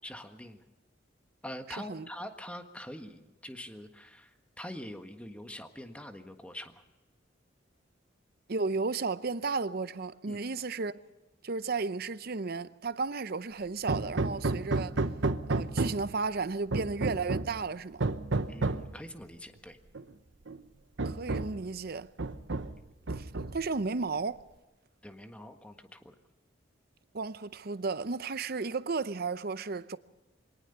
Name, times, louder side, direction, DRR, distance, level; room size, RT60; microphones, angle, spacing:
voice 1, 0.0-0.6 1.4-6.8 10.3-10.4 18.5-19.8 25.0-26.1, left 1 dB, 5° left, 1.5 m, -44 dB
voice 2, 8.5-11.0 11.4-15.0 15.5-18.0 21.0-22.1 23.2-23.3 23.5-24.4 27.1-30.0, right 4 dB, 55° right, 0.7 m, -33 dB
Hammer, 13.9-16.2 16.7-17.6 18.0-18.9 20.0-20.1 20.5-20.6 21.0-21.6 22.2-22.8 23.1-23.8, right 2 dB, 75° right, 1.0 m, -31 dB
24.0 x 18.5 x 6.9 m
head